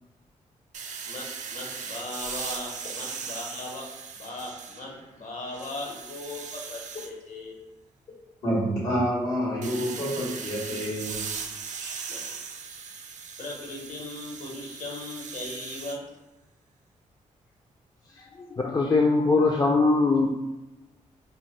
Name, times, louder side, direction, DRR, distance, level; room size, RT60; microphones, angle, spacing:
sound 1, 0.7-5.0 5.4-7.1 9.6-16.0, right 6 dB, 55° right, 0.4 m, -38 dB
voice 1, 1.0-3.9 4.2-7.5 12.0-12.2 13.4-16.1, left 2 dB, 60° left, -2 dB, 0.9 m, -38 dB
voice 2, 8.4-11.2 11.8-11.9, equal, 90° left, -9 dB, 1.4 m, -28 dB
voice 3, 18.5-20.3, left 3 dB, 30° left, 0 dB, 0.3 m, -21 dB
2.7 x 2.0 x 3.1 m, 1.0 s
supercardioid pair, 45°, 15 cm